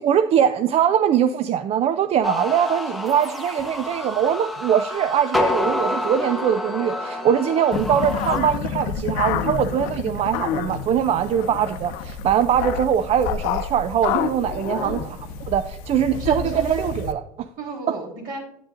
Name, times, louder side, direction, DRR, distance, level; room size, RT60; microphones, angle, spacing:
voice 1, 0.0-15.0 15.5-17.5 17.9-18.0, right 9 dB, 40° right, 11 dB, 0.4 m, -22 dB
sound 1, 2.2-8.4, left 1 dB, ahead, 1.0 m, -28 dB
sound 2, 7.7-17.1, left 8 dB, 60° left, 0.7 m, -29 dB
voice 2, 16.1-16.9 17.6-18.4, right 4 dB, 60° right, 0 dB, 3.4 m, -34 dB
9.0 x 8.5 x 2.5 m, 0.77 s
hypercardioid pair, 80°, 16 cm